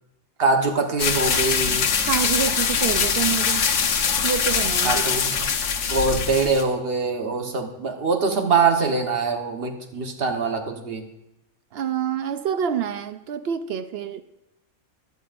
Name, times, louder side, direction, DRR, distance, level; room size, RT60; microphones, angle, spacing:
voice 1, 0.4-1.9 4.8-5.5 5.9-11.1, right 4 dB, 45° right, 4 dB, 1.3 m, -23 dB
sound 1, 1.0-6.6, left 6 dB, 65° left, 1.1 m, -23 dB
voice 2, 2.0-3.7 4.2-5.0 11.7-14.2, right 8 dB, 65° right, 11 dB, 0.6 m, -27 dB
16.5 x 11.0 x 2.5 m, 0.91 s
omnidirectional pair, 1.4 m